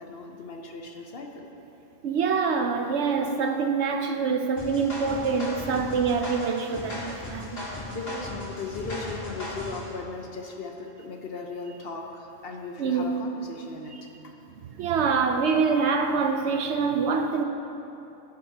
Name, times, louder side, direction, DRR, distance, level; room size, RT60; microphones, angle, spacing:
voice 1, 0.0-1.5 7.8-14.3, left 4 dB, 55° left, 0.9 m, -37 dB
voice 2, 2.0-7.6 12.8-13.1 14.8-17.4, right 5 dB, 65° right, 0.8 m, -25 dB
sound 1, 4.6-9.9, left 1 dB, 70° left, 2.7 m, -37 dB
17.5 x 6.5 x 2.8 m
omnidirectional pair, 1.3 m